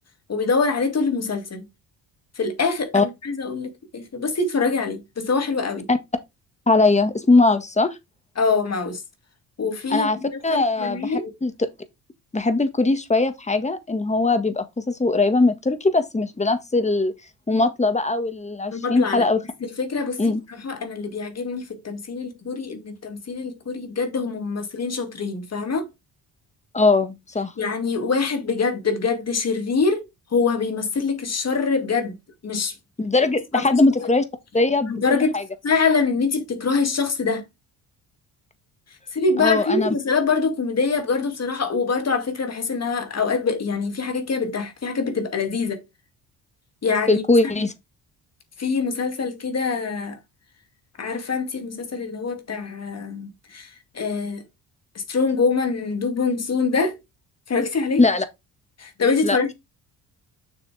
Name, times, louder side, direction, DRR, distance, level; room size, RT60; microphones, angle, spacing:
voice 1, 0.3-1.7 2.4-5.9 8.4-9.0 9.6-11.3 18.7-19.3 19.8-20.3 20.6-25.9 27.6-30.0 30.3-32.2 32.4-32.7 33.5-34.1 34.9-35.4 35.6-37.4 39.1-45.8 46.8-47.2 48.6-50.2 51.0-54.4 55.1-57.0 57.5-58.0 58.8-59.5, left 4 dB, 40° left, 2.3 m, -24 dB
voice 2, 6.7-7.9 9.9-10.2 10.4-11.7 12.3-17.1 17.5-19.4 20.2-20.4 26.7-27.5 33.0-34.2 34.5-35.4 39.4-39.9 47.1-47.7 58.0-58.2 59.2-59.4, left 3 dB, 15° left, 1.6 m, -20 dB
7.0 x 6.3 x 3.4 m
cardioid pair, 80°, 39 cm